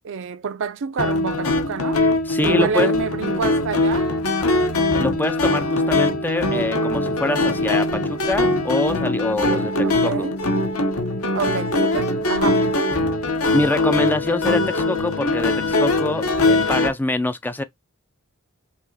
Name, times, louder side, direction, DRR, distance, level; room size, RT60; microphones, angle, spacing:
voice 1, 0.0-2.0 2.4-4.1 9.8-10.3 11.3-12.6, right 6 dB, 60° right, 0.5 m, -27 dB
sound 1, 1.0-16.9, left 2 dB, 70° left, 1.1 m, -21 dB
voice 2, 2.3-2.9 5.0-10.3 13.5-17.6, left 2 dB, 10° left, 0.4 m, -25 dB
5.6 x 3.0 x 2.8 m
head